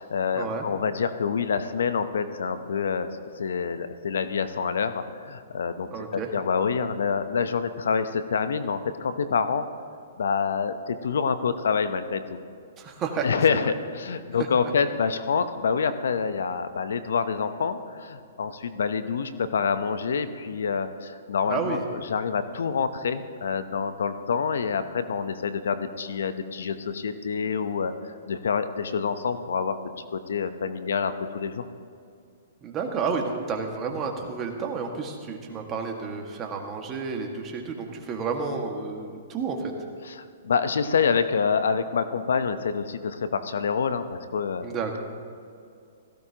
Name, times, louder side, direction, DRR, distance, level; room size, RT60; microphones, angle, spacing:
voice 1, 0.0-3.1 3.4-9.6 10.2-12.2 13.2-27.9 28.3-29.8 30.1-31.6 40.0-44.7, left 6 dB, 75° left, 11 dB, 0.8 m, -27 dB
voice 2, 5.9-6.3 12.8-13.3 21.5-21.8 32.6-39.7 44.6-45.0, right 5 dB, 25° right, 2 dB, 1.8 m, -31 dB
17.0 x 15.0 x 2.9 m, 2.4 s
hypercardioid pair, 130°, 0 cm